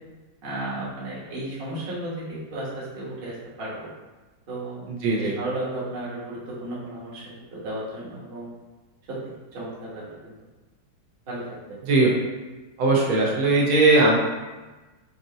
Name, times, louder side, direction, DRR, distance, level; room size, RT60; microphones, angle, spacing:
voice 1, 0.4-3.3 3.6-3.9 4.5-4.9 5.2-7.2 7.5-8.5 9.2-10.3 11.3-11.6, right 1 dB, 40° right, -7 dB, 0.9 m, -34 dB
voice 2, 4.9-5.3 11.8-12.1 12.8-14.2, right 2 dB, 80° right, -3 dB, 1.6 m, -19 dB
4.6 x 2.7 x 2.7 m, 1.2 s
omnidirectional pair, 2.2 m